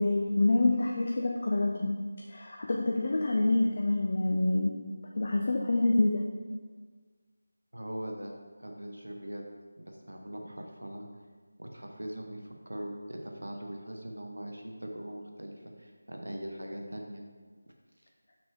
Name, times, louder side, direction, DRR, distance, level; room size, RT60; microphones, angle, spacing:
voice 1, 0.0-1.9 2.3-4.7 5.1-6.2, left 2 dB, 40° left, 0 dB, 0.5 m, -26 dB
voice 2, 7.7-8.3 8.6-9.4 9.8-11.1 11.6-17.2, right 1 dB, 75° right, 2 dB, 1.1 m, -41 dB
5.8 x 5.7 x 3.4 m, 1.5 s
figure-of-eight pair, 165°, 0 cm